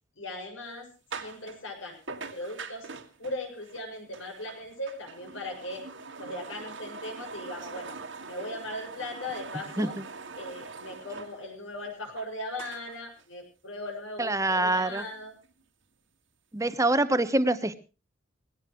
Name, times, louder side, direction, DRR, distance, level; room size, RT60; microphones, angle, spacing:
voice 1, 0.2-0.9 1.2-2.0 2.3-2.9 3.2-5.9 6.2-8.0 8.3-10.0 10.4-15.4, left 1 dB, 90° left, 2 dB, 7.2 m, -38 dB
sound 1, 0.6-0.7 1.1-1.6 2.1-12.3 12.6-13.2 13.9-14.0 14.5-14.6 14.9-15.6, right 4 dB, 75° right, 2.0 m, -43 dB
voice 2, 14.2-15.0 16.5-17.8, right 2 dB, 15° right, 12 dB, 1.0 m, -25 dB
21.5 x 17.0 x 3.2 m, 0.32 s
head